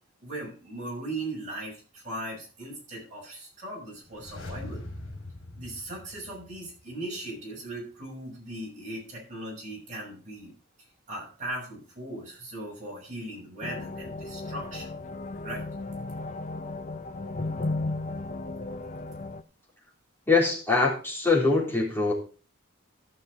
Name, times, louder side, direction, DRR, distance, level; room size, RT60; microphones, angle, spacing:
voice 1, 0.2-4.8 5.6-10.5 10.8-14.9 15.4-15.6, right 1 dB, 35° right, -2 dB, 6.5 m, -38 dB
sound 1, 4.0-6.9 7.2-7.3, left 2 dB, 65° left, 3.5 m, -42 dB
sound 2, 13.6-19.4, left 2 dB, 35° left, 0.6 m, -35 dB
voice 2, 20.3-22.1, left 3 dB, 10° left, -4 dB, 3.7 m, -23 dB
14.0 x 6.4 x 4.9 m, 0.37 s
head